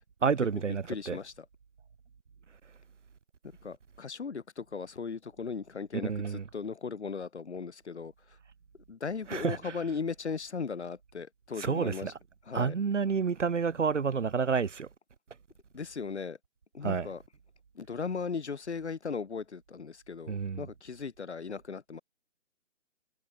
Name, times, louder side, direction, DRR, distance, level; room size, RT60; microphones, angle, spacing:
voice 1, 0.2-1.2 6.0-6.4 9.3-9.7 11.6-12.1 12.5-14.9 16.8-17.1 20.3-20.6, right 5 dB, 75° right, 1.8 m, -29 dB
voice 2, 0.9-1.5 3.6-8.4 8.9-12.1 12.4-12.8 15.7-16.4 16.7-17.2 17.7-22.0, left 5 dB, 60° left, 5.7 m, -37 dB
hypercardioid pair, 175°, 37 cm